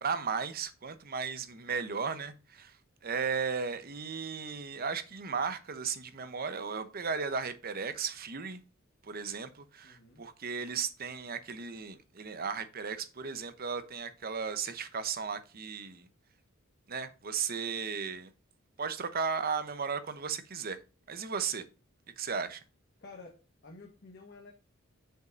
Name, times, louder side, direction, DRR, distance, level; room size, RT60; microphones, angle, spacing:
voice 1, 0.0-2.8 3.0-8.6 9.0-16.1 16.9-18.3 18.8-20.8 21.1-21.6 22.2-22.6, right 5 dB, 50° right, 0.9 m, -35 dB
voice 2, 9.8-10.2 23.0-24.5, left 3 dB, 55° left, 1.4 m, -51 dB
6.5 x 5.1 x 5.1 m
head